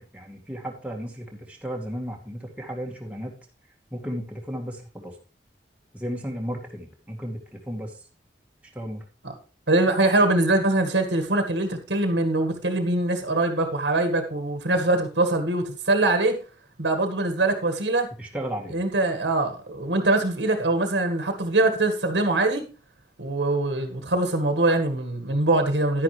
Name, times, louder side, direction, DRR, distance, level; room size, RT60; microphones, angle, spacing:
voice 1, 0.0-3.4 3.9-5.2 5.9-7.9 8.7-9.0 18.2-18.8, equal, 10° right, -1 dB, 2.2 m, -34 dB
voice 2, 9.7-16.4 16.8-18.1 18.7-22.7 23.2-26.0, right 2 dB, 85° right, 6 dB, 1.8 m, -23 dB
11.0 x 10.5 x 3.3 m, 0.35 s
head